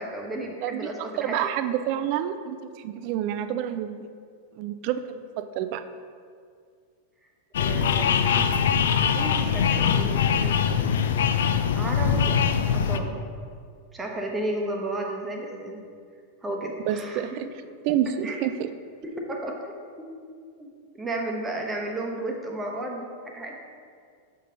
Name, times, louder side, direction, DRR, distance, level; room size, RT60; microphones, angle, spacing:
voice 1, 0.0-1.6 7.6-8.5 9.1-10.8 11.8-13.2 13.9-15.8 16.4-17.3 18.0-18.4 19.0-20.1 20.5-23.6, right 1 dB, 15° right, 0 dB, 0.9 m, -33 dB
voice 2, 1.2-4.1 4.5-5.8 12.7-12.9 16.9-17.4 17.8-18.7, right 10 dB, 45° right, 11 dB, 0.3 m, -28 dB
sound 1, 7.5-13.0, left 7 dB, 60° left, 0.3 m, -22 dB
6.5 x 5.3 x 3.8 m, 2.1 s
figure-of-eight pair, 90°, 0 cm